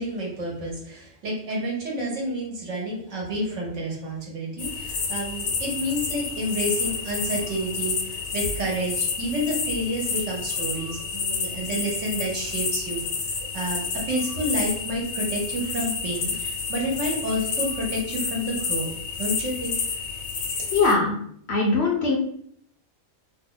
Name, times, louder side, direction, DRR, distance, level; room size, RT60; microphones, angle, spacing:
voice 1, 0.0-13.0 13.5-18.9 19.2-19.8, equal, 65° right, -2 dB, 1.3 m, -29 dB
sound 1, 4.6-20.9, left 5 dB, 80° left, 1.1 m, -30 dB
voice 2, 20.7-21.2 21.5-22.2, left 3 dB, 65° left, -1 dB, 0.7 m, -21 dB
2.9 x 2.0 x 3.8 m, 0.67 s
omnidirectional pair, 1.4 m